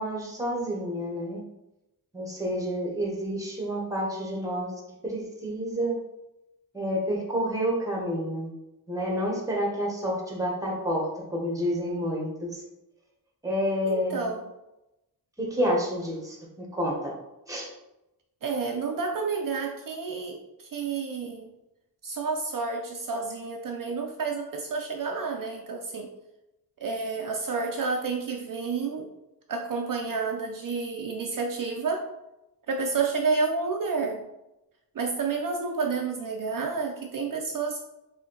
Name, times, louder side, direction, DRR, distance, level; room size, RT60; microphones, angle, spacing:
voice 1, 0.0-1.4 2.1-4.7 5.0-6.0 6.7-8.5 8.9-12.6 13.4-14.2 15.4-17.1 17.5-17.7, equal, 10° right, -1 dB, 0.9 m, -29 dB
voice 2, 13.9-14.4 18.4-21.5 22.0-26.1 26.8-29.1 29.5-32.1 32.7-34.2 34.9-37.8, right 4 dB, 55° right, 2 dB, 0.5 m, -30 dB
4.2 x 2.8 x 3.8 m, 0.94 s
wide cardioid pair, 135°, 39 cm